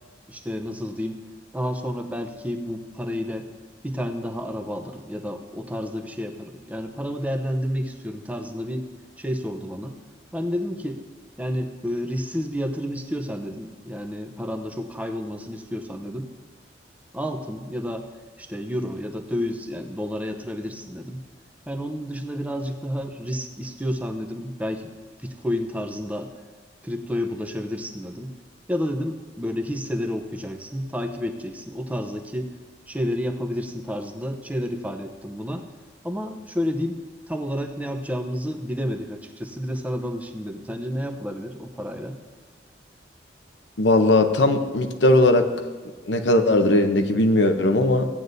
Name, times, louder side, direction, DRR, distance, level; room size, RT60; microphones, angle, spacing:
voice 1, 0.3-1.2 1.5-3.5 3.8-8.9 9.2-10.0 10.3-11.0 11.4-16.3 17.1-18.1 18.4-21.2 21.7-24.9 25.2-26.3 26.8-28.3 28.7-32.5 32.9-35.7 36.0-42.2, equal, 10° right, 4 dB, 0.7 m, -30 dB
voice 2, 43.8-45.5 46.1-48.1, left 2 dB, 75° left, 7 dB, 0.8 m, -18 dB
16.5 x 9.4 x 2.7 m, 1.4 s
head